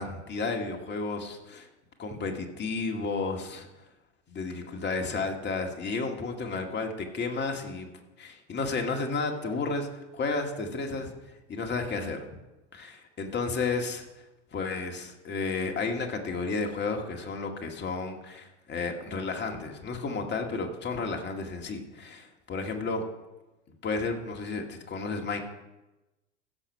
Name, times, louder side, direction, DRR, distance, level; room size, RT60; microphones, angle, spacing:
voice 1, 0.0-1.7 2.0-3.7 4.3-7.9 8.2-9.9 10.1-11.1 11.5-12.2 12.7-14.0 14.5-23.0 23.8-25.4, left 4 dB, 30° left, 3 dB, 1.9 m, -32 dB
15.5 x 6.2 x 5.5 m, 1.0 s
figure-of-eight pair, 80°, 37 cm